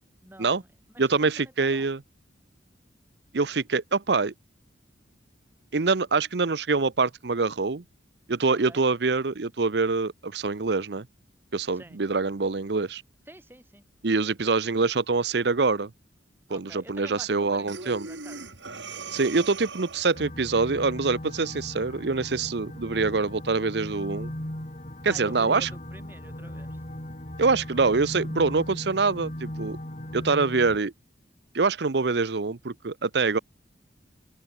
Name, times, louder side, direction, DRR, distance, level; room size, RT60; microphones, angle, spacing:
voice 1, 0.2-0.7 0.9-1.9 8.5-8.8 11.7-12.0 13.3-13.8 16.5-18.4 25.0-26.8, right 1 dB, 10° right, 7.7 m, -48 dB
voice 2, 1.0-2.0 3.3-4.3 5.7-7.8 8.3-11.1 11.5-13.0 14.0-15.9 16.5-18.1 19.1-24.3 25.0-25.7 27.4-29.8 30.1-30.9 31.5-33.4, right 4 dB, 60° right, 0.7 m, -25 dB
Breathing, 17.7-20.2, right 4 dB, 75° right, 4.3 m, -39 dB
sound 1, 20.1-30.8, left 1 dB, 40° left, 3.2 m, -38 dB
head